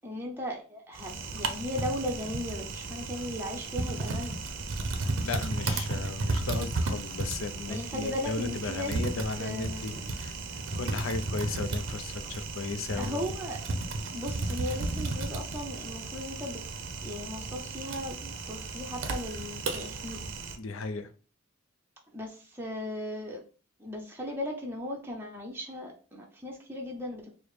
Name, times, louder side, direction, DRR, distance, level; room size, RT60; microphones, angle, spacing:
voice 1, 0.0-4.4 7.7-9.1 9.4-10.1 13.0-13.6 14.1-16.6 17.0-20.3 22.1-23.4 23.8-27.3, left 1 dB, 10° right, 0.6 m, -37 dB
Typing, 0.9-20.6, right 3 dB, 65° right, 0.6 m, -34 dB
voice 2, 5.2-13.2 20.6-21.1, left 3 dB, 75° left, 0.5 m, -35 dB
4.7 x 2.1 x 3.2 m
head